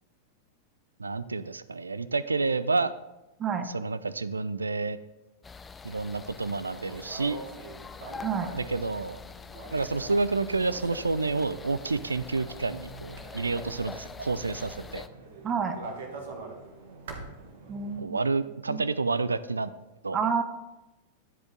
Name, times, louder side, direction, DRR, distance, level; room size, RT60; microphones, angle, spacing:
voice 1, 1.0-2.9 3.7-5.0 5.8-7.4 8.5-9.2 9.7-15.0 18.0-19.7 20.0-20.2, right 3 dB, 80° right, 15 dB, 0.3 m, -29 dB
sound 1, 5.4-15.1, left 5 dB, 15° left, 0.3 m, -45 dB
sound 2, 6.6-18.0, right 3 dB, 60° right, 1.2 m, -45 dB
voice 2, 8.2-8.5 15.4-15.8 17.7-18.2 18.7-18.8 20.1-20.4, right 6 dB, 25° right, 8 dB, 0.8 m, -29 dB
10.5 x 5.2 x 3.7 m, 0.99 s
figure-of-eight pair, 90°, 0 cm